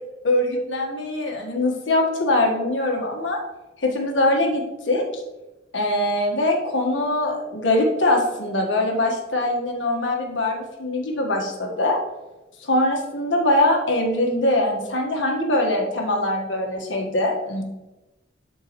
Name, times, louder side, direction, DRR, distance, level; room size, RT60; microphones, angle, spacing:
voice 1, 0.2-3.4 3.8-5.2 5.7-12.0 12.6-17.6, left 1 dB, 80° left, 1 dB, 1.6 m, -22 dB
11.5 x 4.6 x 3.1 m, 1.0 s
head